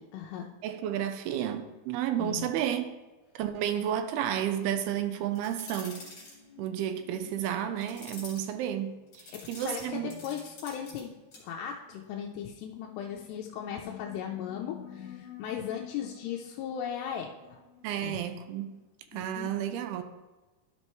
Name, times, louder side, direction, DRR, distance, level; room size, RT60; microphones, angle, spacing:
voice 1, 0.0-0.5 2.2-2.5 9.3-11.1 11.4-17.6 18.0-18.2 19.1-19.5, left 8 dB, 85° left, 2.7 m, -37 dB
voice 2, 0.6-2.9 3.4-6.0 6.6-9.2 9.5-10.1 17.8-18.8 19.1-20.0, right 10 dB, 85° right, 2.4 m, -31 dB
sound 1, 4.2-18.8, left 8 dB, 65° left, 1.7 m, -51 dB
sound 2, 5.4-6.4 7.8-8.5 9.1-11.0 11.3-11.5, left 2 dB, 35° left, 2.8 m, -46 dB
12.5 x 5.5 x 3.0 m
omnidirectional pair, 4.7 m